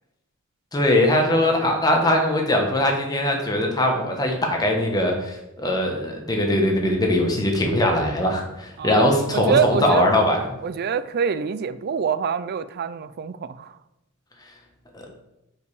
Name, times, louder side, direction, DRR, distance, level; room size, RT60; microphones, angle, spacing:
voice 1, 0.7-10.5 14.9-15.0, left 1 dB, 20° left, 1 dB, 1.1 m, -21 dB
voice 2, 8.8-10.1 10.6-13.7, right 6 dB, 50° right, 14 dB, 0.4 m, -25 dB
5.3 x 4.8 x 4.8 m, 0.90 s
head